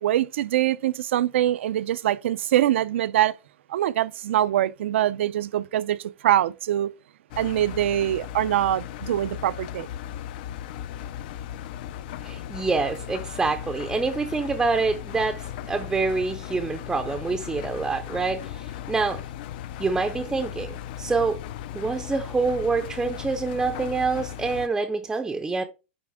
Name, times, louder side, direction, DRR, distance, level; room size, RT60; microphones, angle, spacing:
voice 1, 0.0-3.4 3.7-6.9 7.4-9.9, right 12 dB, 70° right, 0.5 m, -24 dB
Engine, 7.3-24.7, left 11 dB, 45° left, 0.5 m, -37 dB
voice 2, 12.2-19.2 19.8-21.4 21.7-25.6, right 4 dB, 5° right, 0.6 m, -26 dB
10.0 x 3.5 x 3.6 m
supercardioid pair, 160°, 7 cm